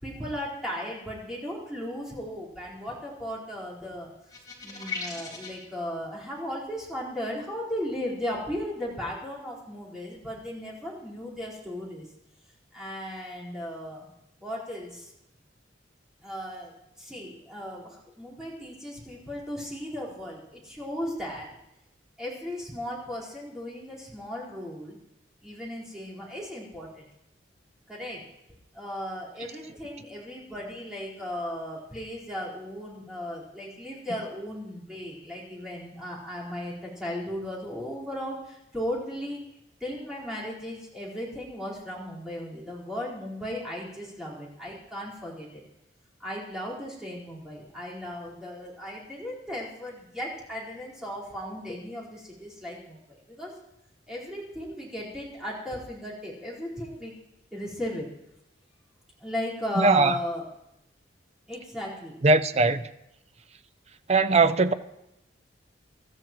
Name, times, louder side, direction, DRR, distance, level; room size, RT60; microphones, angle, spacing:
voice 1, 0.0-4.3 4.6-12.1 12.7-14.1 14.4-15.1 16.2-21.5 22.2-25.0 25.4-27.0 27.9-28.2 28.7-39.4 39.8-45.6 46.2-53.5 54.1-57.1 57.5-58.1 59.2-60.5 61.5-62.2, equal, 5° right, 4.4 m, -36 dB
sound 1, 4.3-5.6, left 5 dB, 20° left, 4.1 m, -37 dB
voice 2, 59.8-60.1 62.2-62.8 64.1-64.7, right 3 dB, 35° right, 0.6 m, -20 dB
26.5 x 13.0 x 3.1 m
head